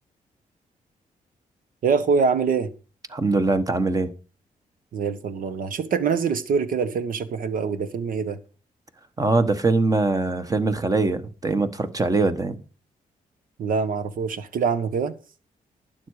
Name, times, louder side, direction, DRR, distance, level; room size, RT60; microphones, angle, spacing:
voice 1, 1.8-2.7 4.9-8.4 13.6-15.1, right 5 dB, 70° right, 1.3 m, -24 dB
voice 2, 3.1-4.1 9.2-12.6, right 3 dB, 25° right, 1.3 m, -22 dB
12.0 x 9.5 x 4.8 m
cardioid pair, 120°, 15 cm